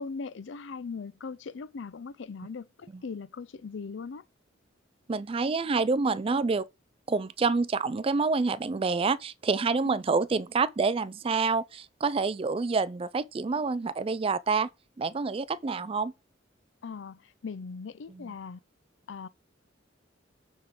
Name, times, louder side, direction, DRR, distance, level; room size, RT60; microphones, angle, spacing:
voice 1, 0.0-4.2 9.8-10.0 16.8-18.6 19.1-19.3, left 5 dB, 70° left, 0.5 m, -39 dB
voice 2, 5.1-6.7 7.1-14.7 15.0-16.1 18.2-18.3, right 4 dB, 30° right, 0.4 m, -27 dB
8.9 x 3.7 x 4.9 m
head